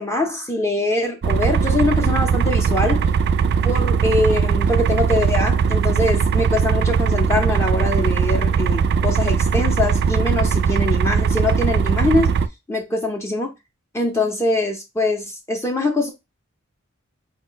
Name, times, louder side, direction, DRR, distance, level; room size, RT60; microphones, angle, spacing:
voice 1, 0.0-3.1 3.6-12.4 12.7-13.5 13.9-16.1, left 2 dB, 15° left, 0.5 m, -23 dB
sound 1, 1.2-12.5, right 6 dB, 50° right, 0.3 m, -19 dB
4.6 x 2.1 x 3.8 m
head